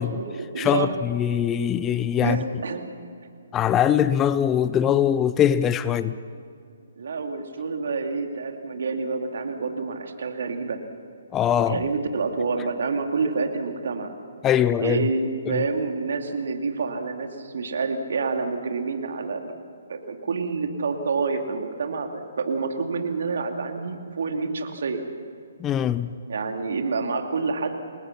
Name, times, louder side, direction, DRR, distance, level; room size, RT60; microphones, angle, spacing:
voice 1, 0.0-1.0 2.2-2.8 7.0-10.8 11.6-14.1 14.8-19.5 19.9-25.0 26.3-27.7, right 4 dB, 60° right, 4 dB, 2.6 m, -28 dB
voice 2, 0.6-2.4 3.5-6.2 11.3-11.8 14.4-15.1 15.5-15.6 25.6-26.1, left 9 dB, 20° left, 14 dB, 0.6 m, -22 dB
29.0 x 20.0 x 5.9 m, 2.5 s
figure-of-eight pair, 135°, 0 cm